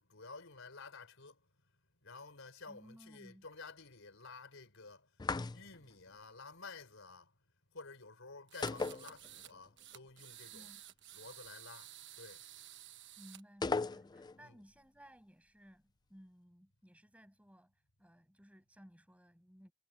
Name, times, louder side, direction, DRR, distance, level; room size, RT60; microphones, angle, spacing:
voice 1, 0.0-1.4 2.0-5.1 5.5-7.3 7.7-10.7 11.1-12.5 14.4-14.6, left 4 dB, 65° left, 5.5 m, -52 dB
voice 2, 2.7-3.5 10.5-10.8 13.2-19.7, equal, 5° right, 6.9 m, -59 dB
sound 1, 5.2-5.9 8.6-9.7 9.9-10.0 13.6-14.4, left 4 dB, 20° left, 0.4 m, -37 dB
sound 2, 8.5-9.5 9.8-13.4, right 12 dB, 60° right, 1.2 m, -53 dB
head